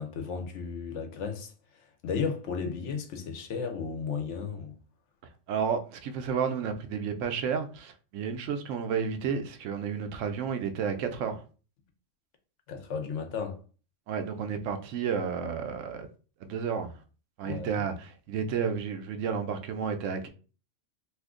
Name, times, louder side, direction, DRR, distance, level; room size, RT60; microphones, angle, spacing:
voice 1, 0.0-4.7 12.7-13.6 17.4-17.8, left 5 dB, 75° left, 1.0 m, -34 dB
voice 2, 5.5-11.4 14.1-16.1 16.4-17.0 17.4-20.3, right 6 dB, 80° right, 0.9 m, -31 dB
2.7 x 2.5 x 3.6 m
omnidirectional pair, 1.3 m